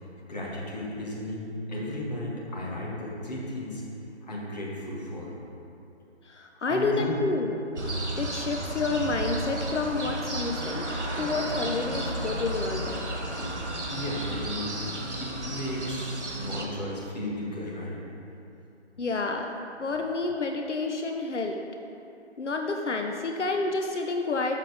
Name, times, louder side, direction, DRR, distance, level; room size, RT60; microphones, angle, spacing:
voice 1, 0.3-3.8 4.2-5.3 6.7-7.2 13.9-18.0, left 1 dB, 35° left, -5 dB, 1.7 m, -34 dB
voice 2, 6.2-7.5 8.2-10.9 11.2-13.0 19.0-19.5 19.8-21.6 22.4-24.6, left 3 dB, 90° left, 3 dB, 0.8 m, -29 dB
sound 1, 7.8-16.7, right 1 dB, 90° right, 1.5 m, -33 dB
6.6 x 6.6 x 5.0 m, 2.7 s
figure-of-eight pair, 160°, 34 cm